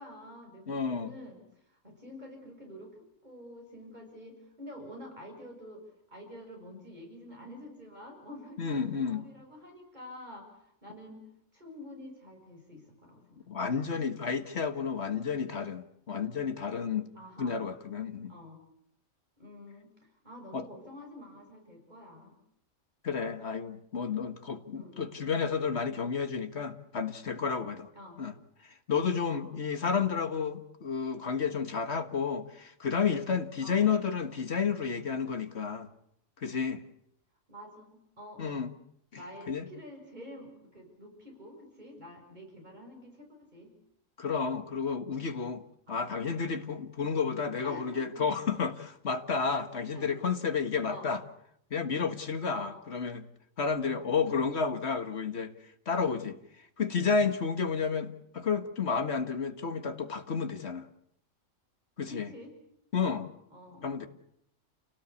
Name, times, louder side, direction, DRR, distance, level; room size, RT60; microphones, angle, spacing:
voice 1, 0.0-1.4 1.7-3.0 3.2-5.8 6.1-11.3 11.5-13.5 17.1-17.6 18.3-18.6 19.4-19.9 20.2-22.4 24.7-25.3 27.9-28.2 29.3-29.5 33.6-33.8 37.5-38.7 39.1-43.7 45.9-46.4 47.6-48.4 49.9-50.1 50.9-51.1 52.5-52.7 53.8-54.0 62.1-62.5 63.0-64.0, left 1 dB, 30° right, 6.7 m, -48 dB
voice 2, 0.7-1.1 8.6-9.2 13.5-17.1 17.4-18.3 20.5-20.7 23.0-27.9 28.2-28.3 28.6-35.9 36.4-36.8 38.4-38.7 39.5-39.7 44.2-45.6 45.9-51.2 51.7-53.3 53.6-55.5 55.9-60.9 62.0-62.3 62.9-63.3 63.8-64.1, left 5 dB, 50° left, 1.8 m, -31 dB
29.0 x 18.0 x 8.4 m
omnidirectional pair, 1.4 m